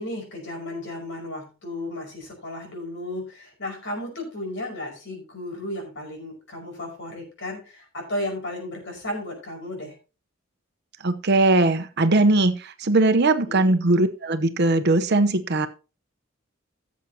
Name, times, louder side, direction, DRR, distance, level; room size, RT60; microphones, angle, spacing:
voice 1, 0.0-9.9 13.5-13.7, left 1 dB, 60° left, 2 dB, 5.2 m, -34 dB
voice 2, 11.0-15.7, right 2 dB, 55° right, 10 dB, 0.9 m, -20 dB
16.0 x 7.4 x 2.8 m, 0.32 s
head